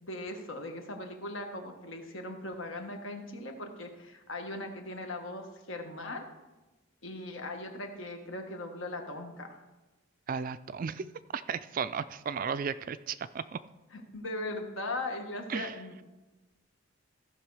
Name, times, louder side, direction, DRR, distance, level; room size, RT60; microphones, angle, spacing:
voice 1, 0.0-6.3 7.0-9.6 13.9-16.0, left 2 dB, 70° left, 4 dB, 1.5 m, -39 dB
voice 2, 10.3-11.1 11.3-13.6 15.5-15.7, right 6 dB, 40° right, 14 dB, 0.3 m, -34 dB
15.5 x 5.9 x 4.8 m, 1.1 s
head